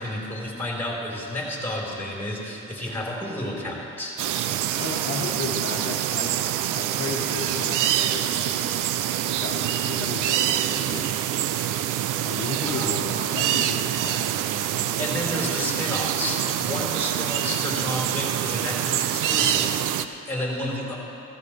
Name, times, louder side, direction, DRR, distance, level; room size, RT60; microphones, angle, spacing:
voice 1, 0.0-4.6 12.6-13.1 15.0-20.9, left 1 dB, 5° left, -4 dB, 3.8 m, -31 dB
sound 1, 4.2-20.0, right 11 dB, 85° right, 0.5 m, -25 dB
voice 2, 4.7-6.3 6.7-8.4 9.4-11.1 12.2-14.3, left 4 dB, 35° left, -4 dB, 1.5 m, -34 dB
16.0 x 14.5 x 3.3 m, 2.7 s
cardioid pair, 90°, 30 cm